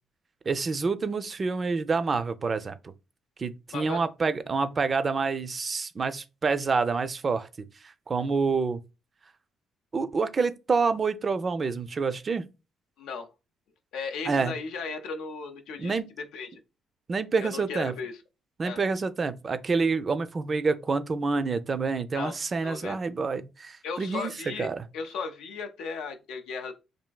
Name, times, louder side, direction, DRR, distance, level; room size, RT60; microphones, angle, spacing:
voice 1, 0.5-2.8 3.4-8.8 9.9-12.5 14.3-14.5 15.8-16.1 17.1-17.9 18.6-24.8, right 4 dB, 40° right, 0.3 m, -28 dB
voice 2, 13.0-13.3 13.9-16.6 17.4-18.2 18.6-18.8 22.1-23.0 23.8-26.7, left 5 dB, 85° left, 0.5 m, -36 dB
3.2 x 2.6 x 2.2 m
cardioid pair, 85°, 0 cm